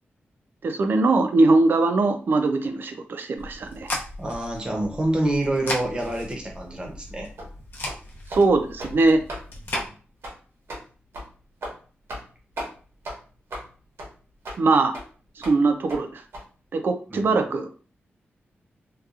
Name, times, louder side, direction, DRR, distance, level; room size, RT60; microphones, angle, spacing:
voice 1, 0.6-3.9 8.3-9.2 14.6-14.9 15.5-16.2 16.7-17.7, right 3 dB, 55° right, 7 dB, 0.4 m, -21 dB
sound 1, 3.4-9.9, left 2 dB, 55° left, 0.6 m, -36 dB
voice 2, 4.2-7.3 17.1-17.4, right 1 dB, 20° right, 1 dB, 0.7 m, -27 dB
sound 2, 7.4-7.5 7.8-8.0 8.3-8.4 8.7-9.0 9.3-9.4 9.7-9.9 10.2-10.4 10.7-10.8 11.1-11.3 11.6-11.8 12.1-12.3 12.6-12.7 13.0-13.2 13.5-13.7 14.0-14.1 14.4-14.6 14.9-15.0 15.4-15.6 15.9-16.0 16.3-16.4, right 1 dB, 85° right, 1.0 m, -35 dB
2.8 x 2.2 x 2.4 m, 0.39 s
wide cardioid pair, 145°, 4 cm